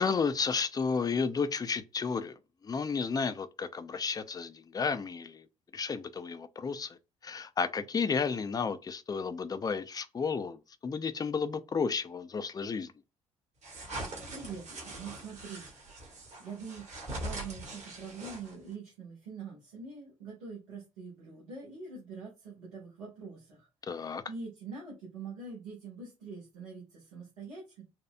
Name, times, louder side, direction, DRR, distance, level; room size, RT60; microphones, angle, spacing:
voice 1, 0.0-2.3 2.6-5.5 5.7-7.0 7.2-12.9 23.9-24.2, left 5 dB, 25° left, 0.5 m, -32 dB
sound 1, 13.6-18.7, right 2 dB, 45° right, 1.6 m, -42 dB
voice 2, 13.8-16.9 17.2-27.8, right 4 dB, 75° right, 1.3 m, -45 dB
4.3 x 2.3 x 2.2 m
figure-of-eight pair, 50°, 16 cm